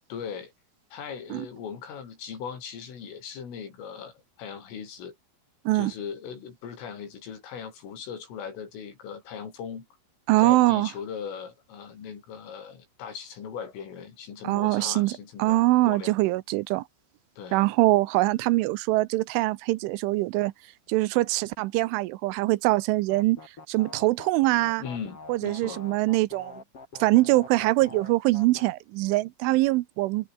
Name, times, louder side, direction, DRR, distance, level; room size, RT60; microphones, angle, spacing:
voice 1, 0.1-0.5 0.9-5.1 5.7-9.9 10.4-16.2 17.4-17.7 24.8-25.8, left 7 dB, 85° left, 7.6 m, -39 dB
voice 2, 10.3-10.9 14.4-16.8 17.5-20.5 20.9-23.4 23.7-24.8 25.3-26.5 27.0-30.3, right 19 dB, 85° right, 3.2 m, -23 dB
sound 1, 23.1-28.6, left 4 dB, 30° left, 5.7 m, -44 dB
omnidirectional pair, 5.6 m